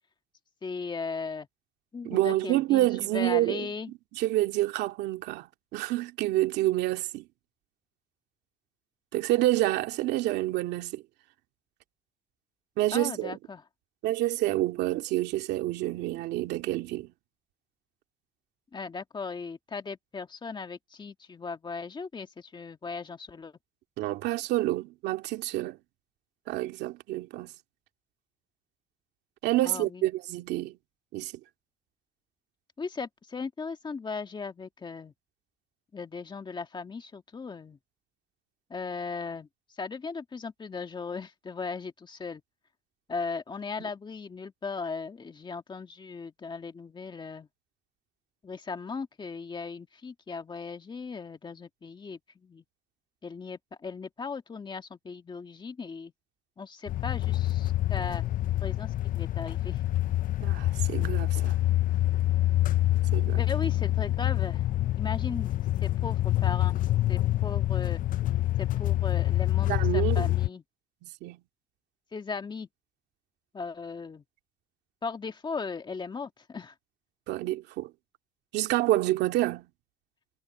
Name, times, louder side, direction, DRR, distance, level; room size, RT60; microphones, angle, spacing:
voice 1, 0.6-1.5 1.9-2.9 3.1-3.9 12.9-13.6 18.7-23.5 29.6-30.0 32.8-35.1 35.9-37.8 38.7-39.5 39.8-42.4 43.1-47.5 48.4-52.6 53.2-56.1 56.6-58.2 58.6-59.8 63.3-64.6 65.0-65.5 65.8-66.8 67.1-68.0 68.6-70.6 72.1-72.7 73.5-74.2 75.0-76.7, left 4 dB, 25° left, 2.0 m, -37 dB
voice 2, 2.0-3.7 4.1-7.3 9.1-11.0 12.8-13.4 14.0-17.1 24.0-25.8 26.5-27.5 29.4-30.8 31.1-31.3 43.8-43.9 60.4-61.6 63.1-63.4 69.7-70.3 71.0-71.4 77.3-77.9 78.5-79.7, right 16 dB, 85° right, 2.3 m, -28 dB
sound 1, 56.9-70.5, left 14 dB, 55° left, 0.6 m, -26 dB
cardioid pair, 110°, 17 cm